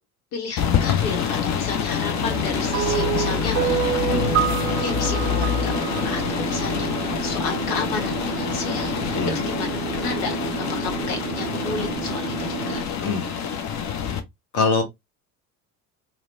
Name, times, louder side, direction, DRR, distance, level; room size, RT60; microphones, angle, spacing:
voice 1, 0.3-4.1 4.8-5.7 6.0-10.3 10.6-13.5, left 5 dB, 70° left, 1.1 m, -32 dB
sound 1, 0.6-14.2, left 8 dB, 35° left, 0.6 m, -26 dB
sound 2, 2.1-12.8, right 10 dB, 75° right, 0.6 m, -32 dB
sound 3, 2.7-7.1, right 11 dB, 30° right, 0.5 m, -27 dB
voice 2, 4.1-4.3 9.1-9.4 13.0-13.2 14.5-14.8, left 4 dB, 50° left, 1.2 m, -22 dB
2.9 x 2.1 x 2.5 m
hypercardioid pair, 70°, 46 cm